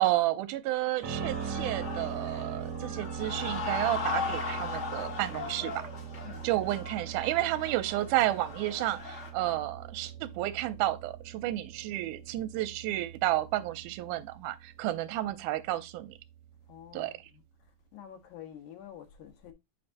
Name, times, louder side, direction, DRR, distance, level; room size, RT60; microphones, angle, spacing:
voice 1, 0.0-5.8 6.4-16.2 16.9-17.1, right 15 dB, 80° right, 2.1 m, -31 dB
sound 1, 1.0-9.3, left 5 dB, 55° left, 0.7 m, -38 dB
sound 2, 1.0-16.9, right 7 dB, 60° right, 1.9 m, -41 dB
voice 2, 16.7-17.1 17.9-19.5, left 10 dB, 75° left, 2.4 m, -47 dB
8.0 x 5.4 x 2.6 m
omnidirectional pair, 3.7 m